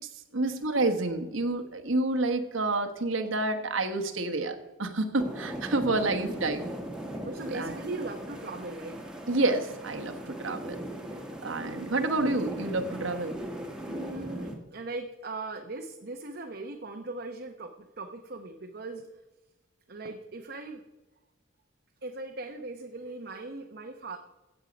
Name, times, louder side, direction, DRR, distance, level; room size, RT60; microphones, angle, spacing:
voice 1, 0.0-6.7 7.5-7.8 9.3-10.8 11.4-13.4, right 2 dB, 75° right, 6 dB, 1.2 m, -29 dB
sound 1, 5.2-14.5, right 1 dB, 5° right, 1.4 m, -39 dB
voice 2, 7.2-9.0 13.9-19.1 19.9-20.8 22.0-24.2, right 2 dB, 50° right, 2 dB, 0.8 m, -39 dB
16.0 x 7.3 x 5.2 m, 1.1 s
head